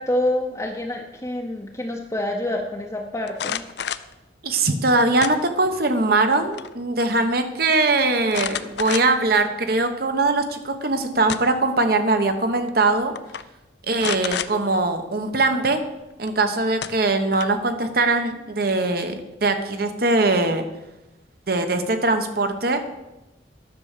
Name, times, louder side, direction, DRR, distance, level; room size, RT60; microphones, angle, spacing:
voice 1, 0.0-3.6, left 1 dB, 15° left, 0 dB, 0.7 m, -27 dB
sound 1, 3.3-4.1 5.2-5.8 6.2-6.7 7.0-7.1 8.3-9.3 9.9-10.0 11.0-11.7 12.7-12.9 13.2-13.4 14.0-14.5 16.3-16.4 16.8-17.7, left 8 dB, 65° left, 0.5 m, -30 dB
voice 2, 4.4-13.1 13.9-15.8 16.2-19.1 19.4-20.6 21.5-22.8, right 2 dB, 55° right, 8 dB, 1.0 m, -21 dB
10.5 x 6.8 x 6.6 m, 0.99 s
head